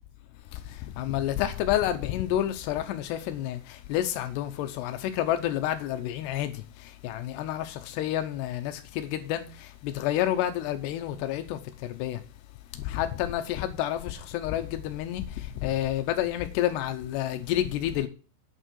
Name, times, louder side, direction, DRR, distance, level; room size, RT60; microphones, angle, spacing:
voice 1, 1.0-6.6 7.0-11.6 11.9-12.2 12.8-15.2 15.6-18.1, left 12 dB, 90° left, 2.4 m, -29 dB
8.6 x 6.4 x 6.3 m
omnidirectional pair, 5.9 m